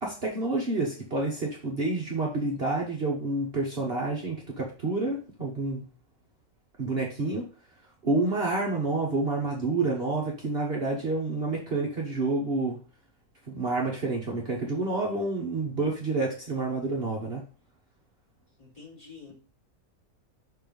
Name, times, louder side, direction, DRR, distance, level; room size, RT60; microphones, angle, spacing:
voice 1, 0.0-5.8 6.8-7.5 8.0-12.8 13.5-17.4, right 2 dB, 45° right, -2 dB, 1.4 m, -29 dB
voice 2, 18.6-19.3, left 5 dB, 25° left, -5 dB, 3.9 m, -47 dB
6.0 x 4.3 x 5.3 m, 0.37 s
omnidirectional pair, 1.5 m